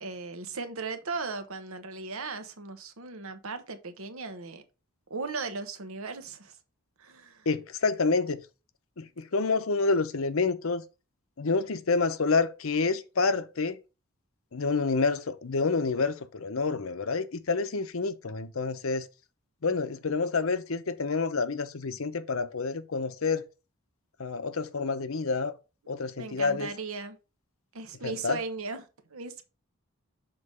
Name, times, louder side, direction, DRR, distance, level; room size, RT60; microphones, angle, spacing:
voice 1, 0.0-4.6 5.1-6.6 7.0-7.5 26.2-27.2 27.7-29.4, right 4 dB, 75° right, 1.0 m, -37 dB
voice 2, 7.5-8.4 9.0-10.8 11.4-13.8 14.5-19.1 19.6-23.4 24.2-25.5 25.9-26.7 28.0-28.4, left 4 dB, 70° left, 0.7 m, -28 dB
6.7 x 4.0 x 5.3 m
head